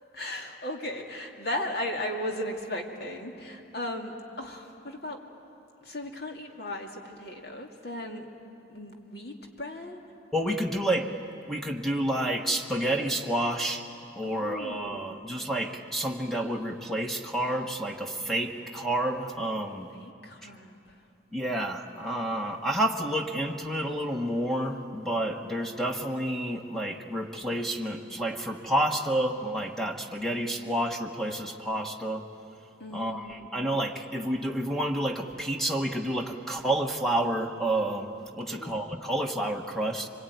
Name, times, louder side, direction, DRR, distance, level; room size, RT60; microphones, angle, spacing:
voice 1, 0.1-5.2 5.9-8.3 8.7-10.0 14.2-15.4 20.0-20.7 32.8-33.5 38.5-38.7, left 1 dB, 55° left, 1 dB, 2.5 m, -36 dB
voice 2, 10.3-11.1 11.5-13.8 14.2-19.9 21.3-32.3 32.9-40.1, right 1 dB, ahead, 2 dB, 1.2 m, -29 dB
25.0 x 22.5 x 9.3 m, 2.7 s
head